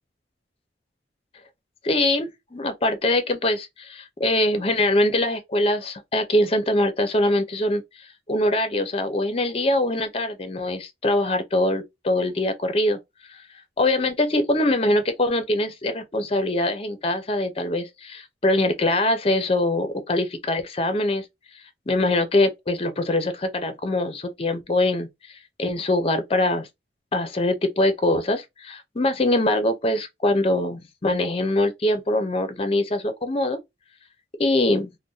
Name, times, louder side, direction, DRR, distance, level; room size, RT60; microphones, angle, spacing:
voice 1, 1.8-7.8 8.3-13.0 13.8-21.2 21.9-25.1 25.6-26.7 27.1-33.6 34.4-34.9, left 1 dB, 35° left, 0.6 m, -23 dB
2.6 x 2.1 x 3.8 m
head